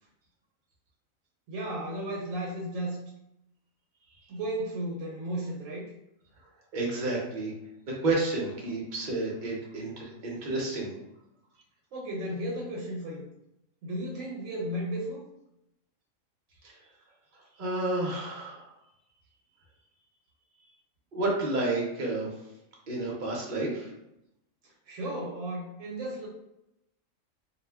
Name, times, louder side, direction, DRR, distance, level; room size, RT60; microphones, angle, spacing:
voice 1, 1.5-3.0 4.3-5.9 11.9-13.3 13.8-15.3 24.9-26.3, right 1 dB, 75° right, -3 dB, 0.9 m, -34 dB
voice 2, 6.7-7.5 7.9-10.9 16.6-16.7 17.6-18.7 21.1-22.3 22.9-23.9, right 2 dB, 45° right, -2 dB, 0.7 m, -30 dB
2.4 x 2.1 x 3.3 m, 0.85 s
omnidirectional pair, 1.4 m